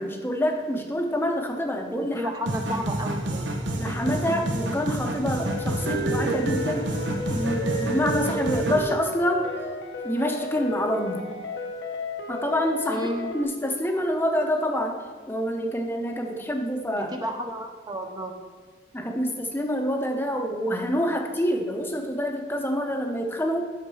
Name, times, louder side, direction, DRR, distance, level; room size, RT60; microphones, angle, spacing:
voice 1, 0.0-2.3 3.8-6.9 7.3-9.5 10.0-11.3 12.3-13.1 13.3-15.0 15.3-17.1 18.9-23.6, equal, 10° left, 3 dB, 0.7 m, -27 dB
voice 2, 2.1-3.4 12.9-13.3 17.0-18.3, equal, 20° right, 3 dB, 0.6 m, -32 dB
sound 1, 2.5-8.9, right 1 dB, 80° right, 1.0 m, -28 dB
sound 2, 5.4-13.4, left 3 dB, 70° left, 0.9 m, -35 dB
9.1 x 6.6 x 4.8 m, 1.4 s
head